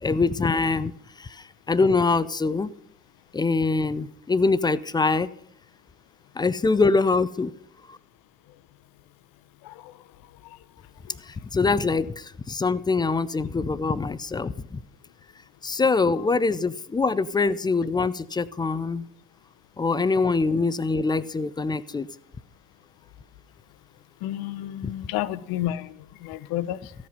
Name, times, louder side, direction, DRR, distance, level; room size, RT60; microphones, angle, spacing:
voice 1, 0.0-0.9 1.2-2.7 3.3-5.3 6.4-7.5 7.9-8.0 11.3-14.8 15.6-19.1 19.8-22.1 24.8-24.9, left 4 dB, 10° left, 17 dB, 0.3 m, -24 dB
voice 2, 9.6-10.0 10.4-10.6 11.0-11.2 24.2-26.9, left 13 dB, 55° left, 16 dB, 0.8 m, -31 dB
14.0 x 7.8 x 5.4 m, 0.71 s
figure-of-eight pair, 55°, 42 cm